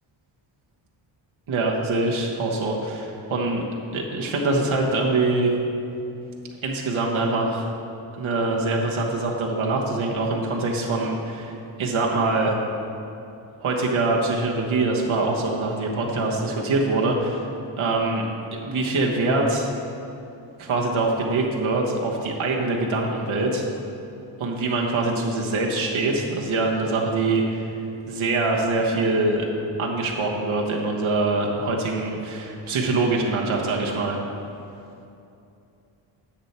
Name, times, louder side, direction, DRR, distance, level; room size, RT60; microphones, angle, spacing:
voice 1, 1.5-3.6 3.9-5.5 6.6-7.7 8.2-12.5 13.6-17.5 17.8-19.7 20.6-23.7 24.4-27.7 28.1-29.5 29.8-34.2, right 2 dB, 70° right, -1 dB, 1.2 m, -24 dB
10.0 x 7.1 x 4.3 m, 2.7 s
wide cardioid pair, 110°, 49 cm